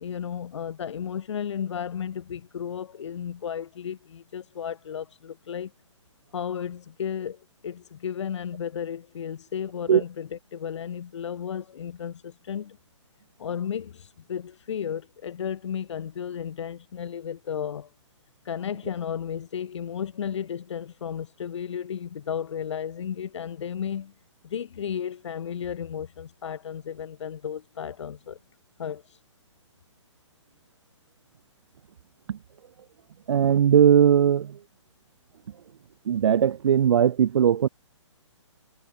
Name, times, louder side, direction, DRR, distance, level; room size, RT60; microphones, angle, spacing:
voice 1, 0.0-5.7 6.3-12.8 13.4-17.9 18.4-24.1 24.4-28.4 28.8-29.2, left 8 dB, 65° left, 0.7 m, -34 dB
voice 2, 33.3-34.6 36.1-37.7, right 9 dB, 65° right, 0.5 m, -19 dB
hypercardioid pair, 160°, 16 cm